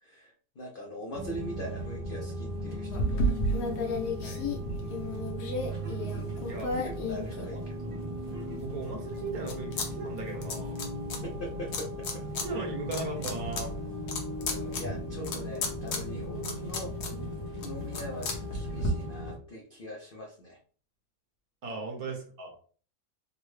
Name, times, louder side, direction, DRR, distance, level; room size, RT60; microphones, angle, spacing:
voice 1, 0.0-3.6 4.6-5.0 6.7-8.0 8.3-8.6 11.2-12.2 12.5-12.8 14.4-16.9 17.6-20.6 21.6-21.8, equal, 65° left, 0 dB, 0.5 m, -42 dB
sound 1, 1.1-19.4, equal, 40° right, 0.7 m, -37 dB
sound 2, 2.9-8.0 8.5-9.9 10.1-11.2 11.7-12.5 12.8-18.9, left 1 dB, 90° left, 1.4 m, -34 dB
voice 2, 7.1-7.6 8.6-10.8 12.4-13.7 21.6-22.5, right 3 dB, 70° right, 1 dB, 1.4 m, -37 dB
3.8 x 2.1 x 3.1 m, 0.42 s
omnidirectional pair, 1.7 m